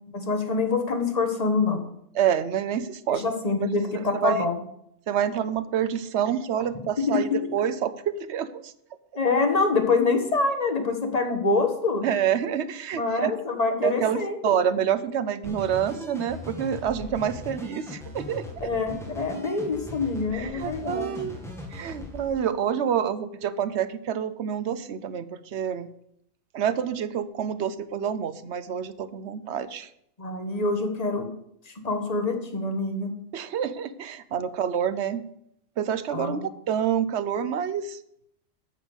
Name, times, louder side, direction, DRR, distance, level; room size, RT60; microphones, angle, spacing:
voice 1, 0.1-1.8 3.1-4.6 7.1-7.4 9.2-12.1 12.9-14.5 18.6-21.1 30.2-31.3 31.8-33.1 36.1-36.4, left 3 dB, 30° left, 5 dB, 1.4 m, -25 dB
voice 2, 2.1-3.3 3.6-3.7 3.9-4.5 5.1-8.7 12.0-13.3 13.8-18.6 20.3-21.4 21.7-25.9 26.5-29.9 33.3-35.2 35.8-38.0, right 9 dB, 65° right, 14 dB, 0.9 m, -27 dB
sound 1, 15.4-22.3, left 2 dB, ahead, 2.0 m, -39 dB
8.9 x 6.7 x 7.2 m, 0.74 s
omnidirectional pair, 1.3 m